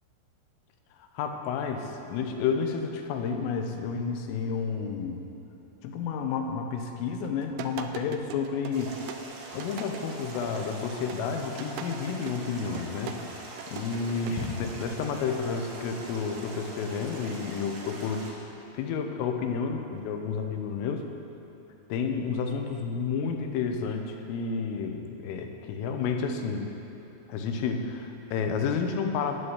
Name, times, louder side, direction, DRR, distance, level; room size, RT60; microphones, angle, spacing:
voice 1, 1.0-5.2 5.8-9.0 9.5-13.2 13.7-18.3 18.7-21.1 21.9-26.7 27.3-29.4, left 5 dB, 90° left, 4 dB, 3.6 m, -31 dB
sound 1, 7.2-14.6, right 9 dB, 80° right, 2.8 m, -41 dB
sound 2, 8.7-18.3, right 2 dB, 60° right, 3.7 m, -43 dB
sound 3, 14.3-15.3, left 4 dB, 75° left, 3.3 m, -37 dB
12.0 x 7.9 x 9.6 m, 2.9 s
omnidirectional pair, 5.7 m